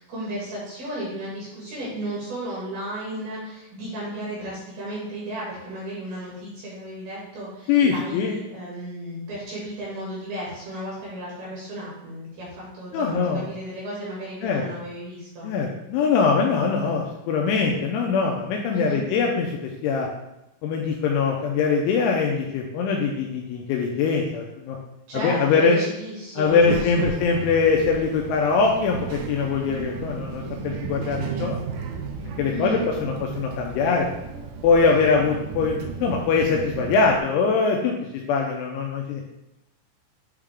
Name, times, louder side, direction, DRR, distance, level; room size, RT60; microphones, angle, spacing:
voice 1, 0.0-15.5 18.7-19.0 25.1-27.1 32.5-32.9, right 1 dB, 60° right, -6 dB, 2.9 m, -34 dB
voice 2, 7.7-8.4 12.9-13.5 14.4-14.7 15.4-20.1 20.6-24.8 25.1-25.8 26.4-31.6 32.4-34.1 34.6-39.2, left 5 dB, 85° left, 0 dB, 2.8 m, -22 dB
Child speech kid speaking, 26.5-37.2, right 6 dB, 80° right, 2.6 m, -34 dB
8.2 x 3.6 x 3.4 m, 0.90 s
omnidirectional pair, 5.9 m